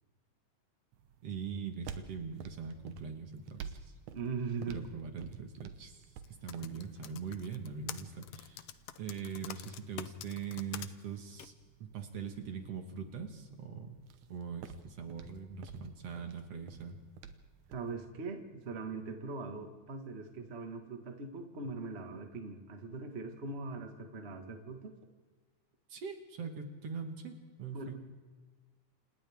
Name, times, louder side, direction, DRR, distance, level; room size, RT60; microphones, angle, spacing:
sound 1, 0.9-18.0, right 7 dB, 80° right, 2.5 m, -52 dB
voice 1, 1.2-3.9 4.7-6.0 6.3-8.7 9.0-11.5 11.8-14.0 14.3-17.0 25.9-28.0, right 6 dB, 60° right, 5 dB, 2.3 m, -42 dB
voice 2, 4.1-4.9 17.7-25.0 27.7-28.0, right 4 dB, 30° right, 4 dB, 1.4 m, -41 dB
Typing, 6.2-10.9 11.4-11.5, left 12 dB, 70° left, 1.5 m, -45 dB
28.5 x 26.5 x 3.6 m, 1.4 s
omnidirectional pair, 3.4 m